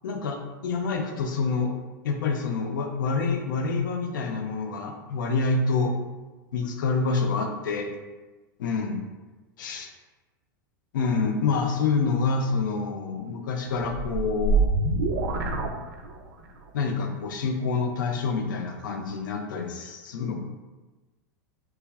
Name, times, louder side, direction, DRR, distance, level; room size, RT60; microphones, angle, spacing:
voice 1, 0.0-1.7 2.0-5.9 6.5-7.9 8.6-9.0 9.6-9.9 10.9-14.7 16.7-20.4, left 4 dB, 80° left, 4 dB, 0.4 m, -27 dB
sound 1, 13.8-16.5, right 3 dB, 75° right, 0.4 m, -25 dB
3.2 x 2.4 x 2.3 m, 1.2 s
hypercardioid pair, 115°, 10 cm